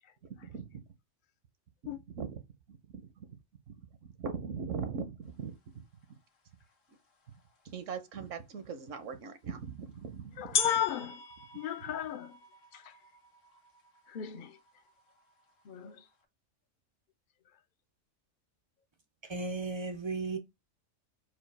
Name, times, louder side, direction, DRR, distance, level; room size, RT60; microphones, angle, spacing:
voice 1, 0.4-0.8 1.9-2.4 2.7-3.0 3.7-3.8 4.2-5.8 7.6-10.6, right 6 dB, 75° right, 1.1 m, -40 dB
sound 1, 6.6-6.7 7.5-7.6 9.3-9.4 10.5-16.1, left 6 dB, 75° left, 1.4 m, -39 dB
voice 2, 10.4-11.2 11.5-12.4 12.7-13.0 14.1-14.6 15.6-16.0, left 11 dB, 55° left, 0.6 m, -35 dB
voice 3, 19.3-20.4, right 3 dB, 45° right, 0.3 m, -35 dB
4.9 x 2.3 x 4.6 m
omnidirectional pair, 1.3 m